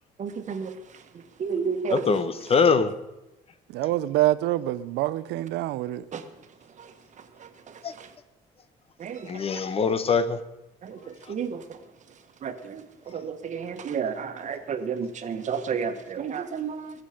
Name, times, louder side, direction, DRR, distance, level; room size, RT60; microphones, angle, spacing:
voice 1, 0.2-2.2 2.5-2.6 6.1-8.2 9.0-9.6 10.8-17.0, right 6 dB, 45° right, 1.4 m, -33 dB
voice 2, 1.9-2.9 7.8-7.9 9.2-10.4, left 5 dB, 35° left, 1.1 m, -23 dB
voice 3, 3.7-6.0, right 15 dB, 85° right, 0.6 m, -26 dB
21.5 x 7.4 x 5.1 m
cardioid pair, 110°, 17 cm